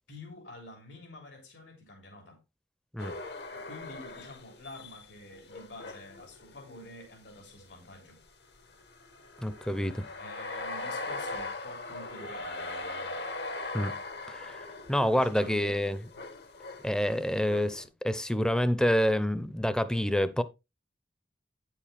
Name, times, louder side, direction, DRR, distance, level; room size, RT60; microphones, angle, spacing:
voice 1, 0.1-2.4 3.5-8.2 10.2-13.2 15.1-16.1, left 1 dB, 85° left, 3.4 m, -48 dB
sound 1, 3.0-7.1 7.6-7.7 8.6-17.8, left 2 dB, 65° left, 1.3 m, -40 dB
voice 2, 9.4-10.1 13.7-14.0 14.3-16.0 16.8-20.4, equal, 5° left, 0.6 m, -28 dB
9.4 x 7.4 x 3.4 m
head